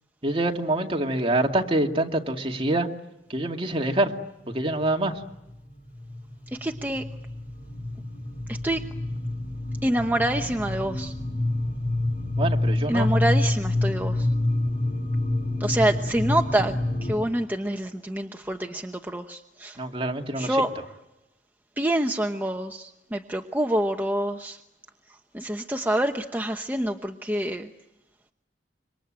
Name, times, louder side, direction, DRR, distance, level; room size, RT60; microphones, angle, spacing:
voice 1, 0.2-2.9 3.3-4.1 4.5-5.2 12.4-13.1 19.8-20.6, right 1 dB, 30° right, 3 dB, 2.3 m, -25 dB
sound 1, 4.5-4.9 5.2-17.1, left 1 dB, 45° left, 4.0 m, -27 dB
voice 2, 6.5-7.1 8.5-8.9 9.8-11.1 12.9-14.3 15.6-19.8 20.3-20.7 21.8-24.6 25.1-27.7, right 1 dB, 10° right, 4 dB, 1.0 m, -27 dB
27.0 x 24.5 x 9.0 m, 0.92 s
head